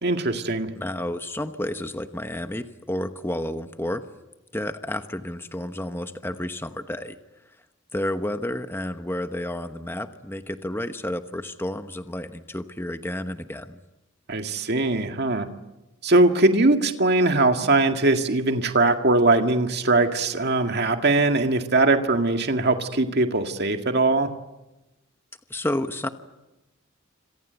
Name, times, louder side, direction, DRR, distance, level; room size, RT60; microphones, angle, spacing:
voice 1, 0.0-0.7 14.3-15.5 16.0-24.3, right 2 dB, 55° right, 5 dB, 2.0 m, -21 dB
voice 2, 0.7-4.0 4.5-7.1 7.9-13.8 25.5-26.1, left 1 dB, 10° left, 8 dB, 1.0 m, -31 dB
27.0 x 26.5 x 8.1 m, 1.0 s
head